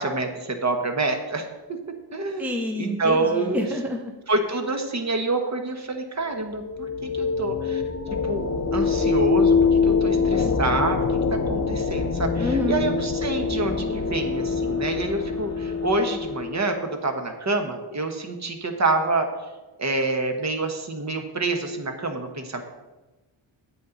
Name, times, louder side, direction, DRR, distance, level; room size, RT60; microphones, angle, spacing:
voice 1, 0.0-1.4 2.1-2.5 2.8-3.7 4.3-6.9 7.2-7.8 8.1-19.3 19.8-22.6, right 2 dB, 35° right, 5 dB, 1.2 m, -27 dB
voice 2, 2.4-4.1 12.4-12.9, left 2 dB, 5° right, 3 dB, 0.7 m, -28 dB
sound 1, 6.3-16.9, left 5 dB, 35° left, 0.7 m, -24 dB
8.4 x 8.4 x 4.0 m, 1.1 s
wide cardioid pair, 120°, 48 cm